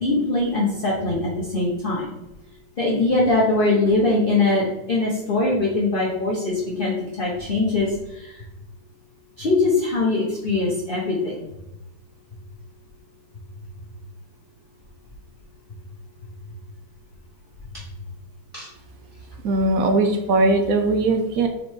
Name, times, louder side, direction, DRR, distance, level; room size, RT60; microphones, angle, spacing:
voice 1, 0.0-2.1 2.8-8.4 9.4-11.4 17.7-17.8 18.5-18.7, left 2 dB, 35° left, -5 dB, 1.1 m, -22 dB
voice 2, 19.4-21.5, right 2 dB, 60° right, 5 dB, 0.9 m, -19 dB
5.2 x 4.4 x 4.5 m, 0.94 s
omnidirectional pair, 2.2 m